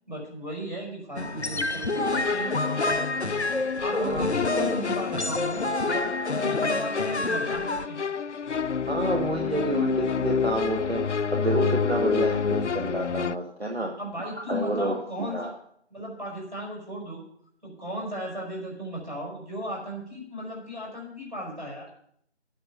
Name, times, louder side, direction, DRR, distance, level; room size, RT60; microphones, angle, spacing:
voice 1, 0.1-2.6 3.2-3.4 3.8-8.0 14.0-15.5 15.9-17.2 17.6-21.9, equal, 40° right, -2 dB, 5.2 m, -35 dB
sound 1, 1.2-7.9, left 2 dB, 70° left, 0.9 m, -28 dB
sound 2, 1.9-13.4, left 6 dB, 90° left, 0.5 m, -29 dB
voice 2, 3.9-4.7 8.9-14.0 14.4-15.5, right 1 dB, 65° right, 2 dB, 1.6 m, -29 dB
9.9 x 9.3 x 6.7 m, 0.67 s
figure-of-eight pair, 180°, 34 cm